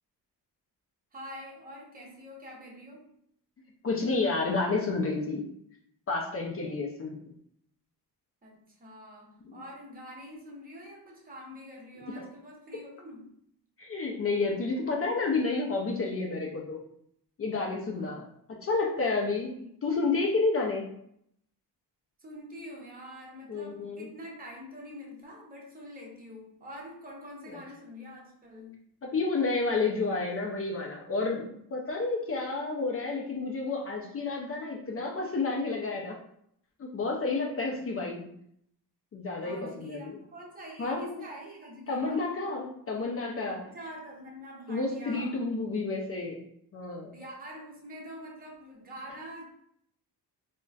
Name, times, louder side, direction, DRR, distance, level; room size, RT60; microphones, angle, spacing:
voice 1, 1.1-3.1 8.4-13.4 17.9-18.3 19.6-19.7 22.2-28.9 39.4-42.2 43.6-45.4 47.1-49.4, equal, 20° right, -3 dB, 0.8 m, -45 dB
voice 2, 3.8-5.5 6.1-7.2 9.5-9.6 12.2-12.3 13.8-16.8 17.4-18.2 18.5-19.5 19.8-20.9 23.5-24.1 27.5-27.6 29.0-36.2 36.8-38.3 39.1-40.1 40.8-41.2 41.9-43.6 44.7-46.4 46.7-47.2, left 3 dB, 35° left, 0 dB, 0.4 m, -30 dB
3.7 x 2.2 x 2.3 m, 0.70 s
cardioid pair, 130°, 40 cm